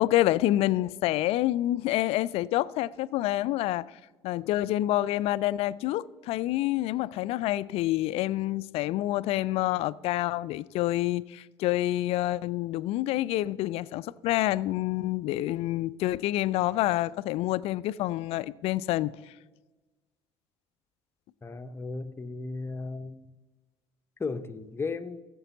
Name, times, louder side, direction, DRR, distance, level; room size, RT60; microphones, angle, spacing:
voice 1, 0.0-3.8 4.2-19.1, left 15 dB, 50° left, 0.3 m, -27 dB
voice 2, 21.4-23.3 24.2-25.2, left 4 dB, 15° left, 0.7 m, -35 dB
16.0 x 7.4 x 4.0 m
figure-of-eight pair, 55°, 13 cm